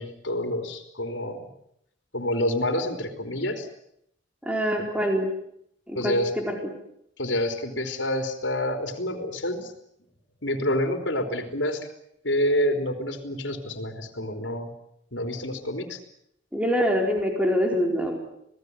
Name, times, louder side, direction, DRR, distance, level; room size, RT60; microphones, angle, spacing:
voice 1, 0.0-1.5 2.1-3.7 6.0-6.3 7.2-9.7 10.4-11.9 12.2-14.7 15.1-16.0, left 1 dB, 70° left, 5 dB, 3.7 m, -28 dB
voice 2, 4.4-5.3 5.9-6.7 16.5-18.2, equal, 5° right, 2 dB, 4.5 m, -25 dB
26.5 x 18.5 x 9.6 m, 0.75 s
head